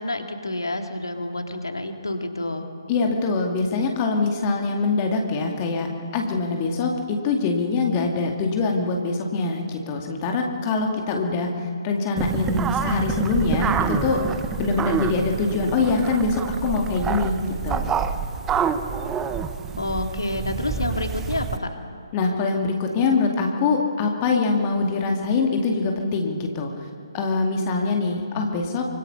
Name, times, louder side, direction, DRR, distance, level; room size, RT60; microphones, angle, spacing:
voice 1, 0.0-2.7 19.8-21.8, left 2 dB, 70° left, 5 dB, 2.4 m, -28 dB
voice 2, 2.9-14.2 14.6-17.4 17.6-17.9 22.1-26.7 27.1-28.9, left 4 dB, 25° left, 2 dB, 2.3 m, -24 dB
sound 1, 12.2-21.6, right 7 dB, 10° right, 0.8 m, -27 dB
25.5 x 24.5 x 5.7 m, 2.7 s
figure-of-eight pair, 140°, 2 cm